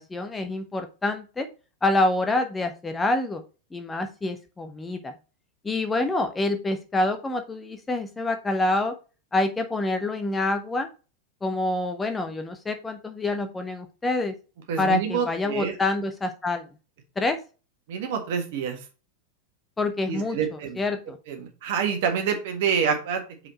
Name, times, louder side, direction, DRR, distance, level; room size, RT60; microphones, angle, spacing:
voice 1, 0.0-1.5 1.8-3.4 3.7-5.1 5.6-8.9 9.3-10.9 11.4-14.3 14.8-16.6 17.2-17.4 19.8-21.2, left 2 dB, 10° left, 7 dB, 0.7 m, -26 dB
voice 2, 14.7-15.7 17.9-18.8 20.1-20.8 21.3-23.2, right 7 dB, 50° right, 4 dB, 1.6 m, -27 dB
4.9 x 4.8 x 4.3 m, 0.33 s
figure-of-eight pair, 90°, 0 cm